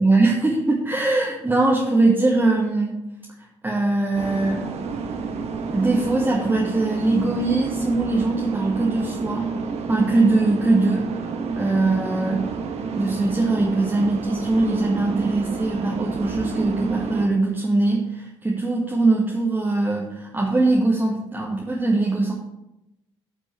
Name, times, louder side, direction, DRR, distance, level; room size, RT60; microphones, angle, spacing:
voice 1, 0.0-3.0 3.6-4.7 5.7-9.5 9.9-11.0 11.6-12.5 13.0-22.3, right 2 dB, 15° right, -3 dB, 1.9 m, -21 dB
sound 1, 4.1-17.3, right 4 dB, 45° right, 1.3 m, -29 dB
13.5 x 7.4 x 3.4 m, 0.91 s
figure-of-eight pair, 50°, 15 cm